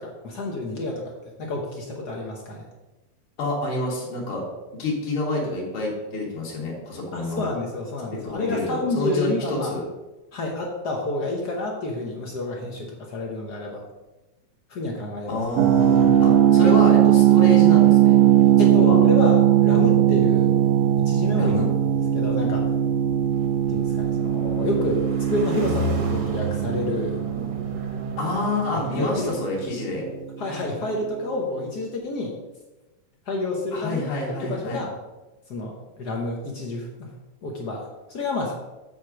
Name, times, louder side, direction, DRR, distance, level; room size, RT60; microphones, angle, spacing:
voice 1, 0.0-2.7 7.1-9.7 10.3-13.8 14.7-15.4 18.6-20.5 21.0-21.6 22.1-22.7 23.7-27.2 29.0-29.3 30.4-32.4 33.3-34.9 35.5-37.1 37.4-38.5, left 2 dB, 75° left, 0 dB, 0.9 m, -29 dB
voice 2, 3.4-4.4 4.7-7.4 8.1-9.8 15.3-18.2 18.8-19.0 21.4-21.7 28.2-30.1 33.7-34.8, left 2 dB, 50° left, -4 dB, 2.5 m, -28 dB
sound 1, 15.3-17.3 17.5-18.8 19.8-20.1 22.2-29.4, right 1 dB, 55° right, 1.2 m, -35 dB
sound 2, 15.6-30.3, right 11 dB, 75° right, 1.7 m, -19 dB
8.0 x 4.5 x 6.2 m, 1.1 s
omnidirectional pair, 3.3 m